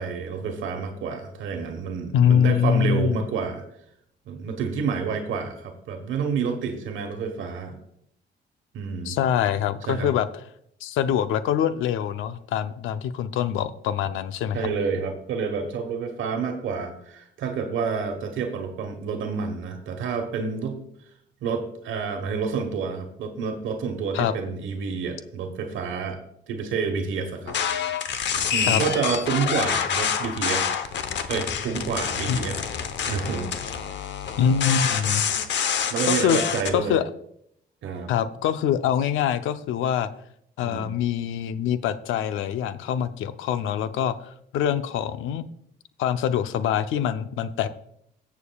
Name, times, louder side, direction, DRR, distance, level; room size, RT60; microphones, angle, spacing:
voice 1, 0.0-3.6 4.3-7.8 8.7-9.2 9.9-10.1 14.5-20.8 21.4-26.2 26.5-27.6 28.5-30.7 31.3-32.6 33.1-33.5 35.9-37.0 37.8-38.1 40.6-40.9, right 5 dB, 80° right, 4 dB, 1.2 m, -29 dB
voice 2, 2.1-3.2 9.1-10.3 10.8-14.6 24.1-24.3 28.7-28.8 32.3-32.4 34.4-35.3 36.1-36.4 36.7-37.0 38.1-40.1 40.6-45.5 46.0-47.7, left 9 dB, 85° left, 12 dB, 0.6 m, -24 dB
sound 1, 27.5-36.7, left 7 dB, 65° left, 0.9 m, -27 dB
17.5 x 6.9 x 2.3 m, 0.73 s
cardioid pair, 90°, 20 cm